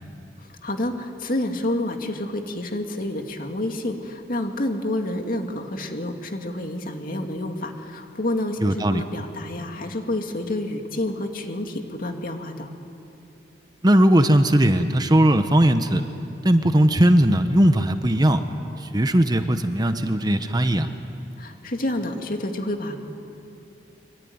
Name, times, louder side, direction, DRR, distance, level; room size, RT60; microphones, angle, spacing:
voice 1, 0.4-12.7 21.4-23.0, left 1 dB, 55° left, 4 dB, 2.4 m, -29 dB
voice 2, 8.6-9.0 13.8-16.0 16.4-18.4 18.8-20.9, right 1 dB, 25° right, 8 dB, 1.0 m, -18 dB
24.5 x 24.0 x 9.6 m, 2.7 s
head